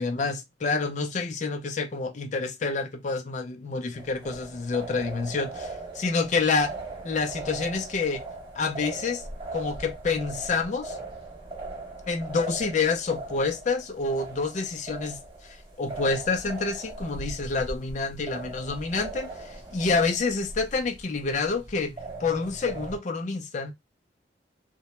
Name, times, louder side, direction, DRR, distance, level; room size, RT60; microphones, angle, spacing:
voice 1, 0.0-6.7 7.0-8.2 8.6-9.2 9.5-11.0 12.1-21.9 22.2-23.7, left 4 dB, 40° left, 0.4 m, -28 dB
sound 1, 3.9-23.0, right 2 dB, 25° right, 0.7 m, -40 dB
2.1 x 2.1 x 2.8 m
head